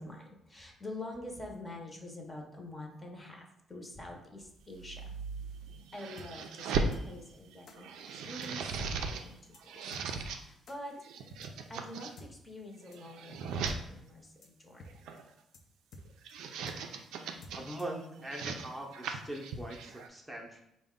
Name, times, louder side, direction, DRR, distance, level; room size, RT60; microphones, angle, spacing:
voice 1, 0.0-5.2 5.9-9.4 9.6-9.8 10.4-10.9 11.7-15.1, left 1 dB, 25° left, 1 dB, 0.7 m, -46 dB
sound 1, 4.7-7.0 7.5-9.2 9.5-10.4 11.0-12.1 12.7-13.8 14.9-15.3 16.1-17.8 18.2-20.1, right 4 dB, 90° right, 0.3 m, -38 dB
sound 2, 6.2-6.3 6.9-7.0 7.7-7.8 8.4-8.5 8.8-8.9 9.2-9.3 9.5-9.6 9.9-10.0 10.7-10.8 11.4-11.5 12.2-12.3 12.9-13.0 13.3-13.4 13.7-13.8 14.0-14.1 14.4-14.5 14.8-14.9 15.2-15.3 15.5-15.6 15.9-16.3 16.7-16.8 17.4-18.0, left 1 dB, 60° left, 0.5 m, -51 dB
voice 2, 17.5-20.6, right 1 dB, 10° right, -1 dB, 0.6 m, -41 dB
3.9 x 2.1 x 3.6 m, 0.83 s
cardioid pair, 90°, 0 cm